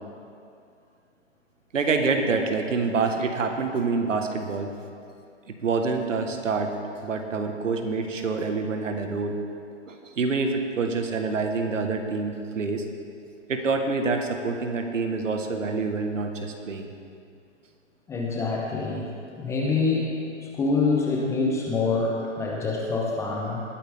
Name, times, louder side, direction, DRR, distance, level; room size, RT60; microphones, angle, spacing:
voice 1, 1.7-4.7 5.5-6.7 7.0-9.4 9.9-12.8 13.5-16.9, right 4 dB, 80° right, 5 dB, 1.6 m, -26 dB
voice 2, 18.1-19.1 19.4-20.1 20.6-23.6, left 3 dB, 10° left, -2 dB, 0.9 m, -25 dB
20.0 x 8.9 x 3.6 m, 2.4 s
hypercardioid pair, 150°, 37 cm